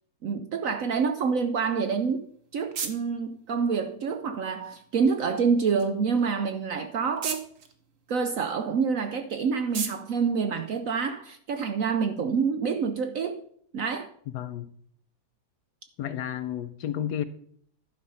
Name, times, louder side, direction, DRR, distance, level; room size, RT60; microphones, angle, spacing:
voice 1, 0.2-2.3 2.5-7.4 8.1-13.4 13.7-14.1, right 5 dB, 65° right, 0.8 m, -27 dB
sound 1, 2.0-11.4, right 6 dB, 50° right, 1.2 m, -42 dB
voice 2, 14.3-14.7 16.0-17.2, left 10 dB, 70° left, 1.1 m, -31 dB
11.5 x 5.2 x 5.5 m
omnidirectional pair, 2.0 m